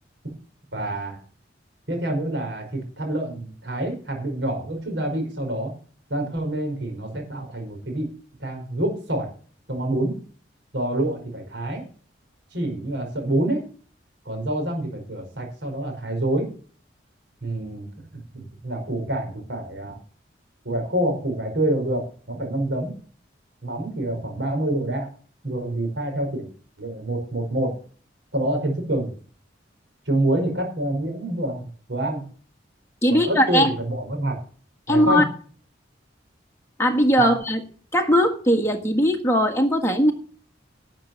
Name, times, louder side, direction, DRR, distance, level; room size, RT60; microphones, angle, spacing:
voice 1, 0.7-1.2 1.9-5.7 6.1-8.1 8.4-9.3 9.7-10.1 10.7-11.8 12.5-13.6 14.3-16.5 17.4-17.9 18.3-20.0 20.7-22.9 23.6-25.1 25.4-26.5 26.8-27.7 28.3-29.1 30.1-32.2 33.1-34.4 34.9-35.2 37.2-37.3, right 1 dB, 70° right, 3 dB, 5.2 m, -27 dB
voice 2, 33.0-33.7 34.9-35.2 36.8-37.6 37.9-40.1, equal, 15° left, 2 dB, 1.7 m, -19 dB
12.0 x 7.5 x 7.1 m, 0.43 s
head